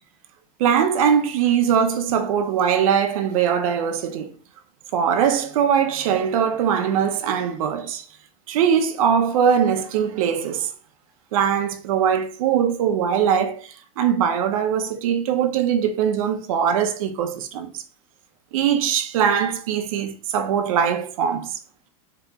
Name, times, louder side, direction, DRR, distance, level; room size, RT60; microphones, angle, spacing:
voice 1, 0.6-4.3 4.9-8.1 8.5-10.7 11.3-17.8 18.5-21.6, right 8 dB, 80° right, 0.7 m, -21 dB
3.9 x 2.9 x 3.5 m
supercardioid pair, 175°, 18 cm